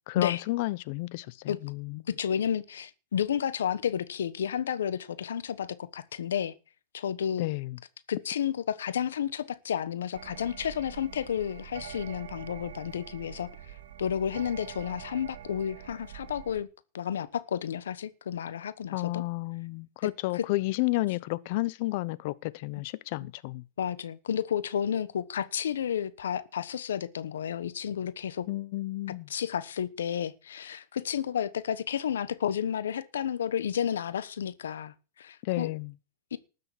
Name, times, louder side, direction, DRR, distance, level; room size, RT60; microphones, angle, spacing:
voice 1, 0.1-2.0 7.4-7.8 18.9-23.6 28.5-29.3 35.4-35.9, left 20 dB, 55° left, 0.8 m, -31 dB
voice 2, 2.1-6.5 6.9-7.5 8.1-13.5 14.0-16.7 16.9-19.2 20.0-20.5 23.2-23.3 23.8-28.5 29.3-35.7 36.3-36.4, left 9 dB, 85° left, 1.1 m, -31 dB
sound 1, 10.1-16.6, right 10 dB, 70° right, 1.9 m, -45 dB
13.0 x 6.8 x 8.5 m
hypercardioid pair, 125°, 0 cm